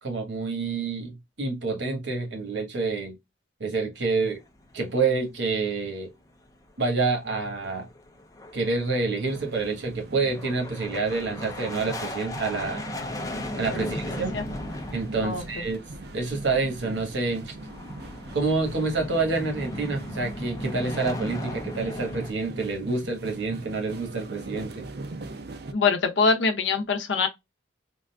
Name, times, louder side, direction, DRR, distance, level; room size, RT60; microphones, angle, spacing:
voice 1, 0.0-3.1 3.6-4.4 4.7-6.1 6.8-7.9 8.5-12.8 13.6-14.3 14.9-15.8 16.1-17.5 18.3-24.8, right 3 dB, 70° right, 1.2 m, -28 dB
sound 1, 4.0-5.7 5.9-6.0 6.5-6.6 6.9-22.3, left 1 dB, 15° left, 0.4 m, -38 dB
sound 2, 9.3-25.7, right 2 dB, 55° right, 0.4 m, -42 dB
voice 2, 13.7-14.4 15.2-15.7 25.7-27.3, left 4 dB, 70° left, 0.7 m, -25 dB
3.7 x 2.5 x 2.2 m
head